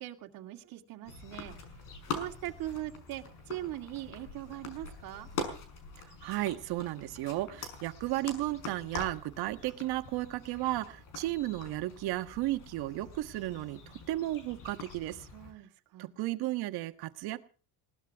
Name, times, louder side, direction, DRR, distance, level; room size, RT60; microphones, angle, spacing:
voice 1, 0.0-1.6 2.1-5.3 15.3-16.1, right 14 dB, 65° right, 3 dB, 2.4 m, -41 dB
sound 1, 1.1-15.5, left 4 dB, 55° left, 5.6 m, -44 dB
voice 2, 6.2-15.3 16.0-17.4, right 16 dB, 80° right, 8 dB, 1.6 m, -34 dB
21.0 x 18.5 x 3.6 m, 0.39 s
cardioid pair, 165°, 38 cm